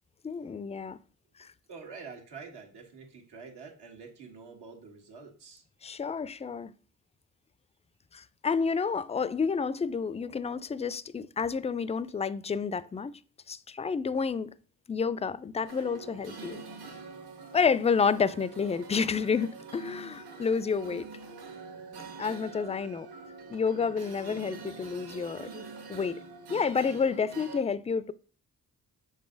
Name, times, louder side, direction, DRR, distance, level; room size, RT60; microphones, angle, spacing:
voice 1, 0.2-1.0 5.8-6.7 8.1-13.1 13.5-14.5 14.9-16.6 17.5-21.1 22.2-23.1 23.5-25.6 25.9-26.2 26.5-28.1, left 5 dB, 15° left, 0.3 m, -29 dB
voice 2, 1.7-5.6, right 5 dB, 85° right, 1.7 m, -47 dB
sound 1, 15.6-27.6, right 4 dB, 65° right, 1.5 m, -45 dB
6.6 x 4.0 x 3.8 m
supercardioid pair, 55°, 40 cm